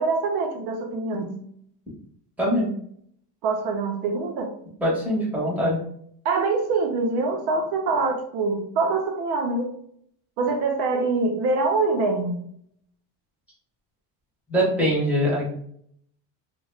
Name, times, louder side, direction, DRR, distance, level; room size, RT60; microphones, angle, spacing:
voice 1, 0.0-1.4 3.4-4.5 6.2-9.8 10.4-12.4, right 3 dB, 65° right, 4 dB, 0.5 m, -24 dB
voice 2, 4.8-5.8 14.5-15.5, equal, 5° right, -6 dB, 0.7 m, -22 dB
2.8 x 2.1 x 3.1 m, 0.66 s
cardioid pair, 170°, 44 cm